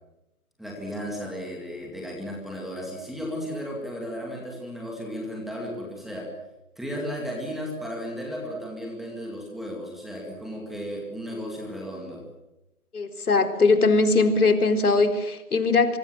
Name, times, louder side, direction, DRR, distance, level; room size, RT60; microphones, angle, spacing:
voice 1, 0.6-6.3 6.8-12.2, equal, ahead, -1 dB, 2.2 m, -34 dB
voice 2, 12.9-16.0, left 3 dB, 80° left, 7 dB, 4.3 m, -21 dB
25.0 x 23.5 x 7.8 m, 0.96 s
hypercardioid pair, 165°, 44 cm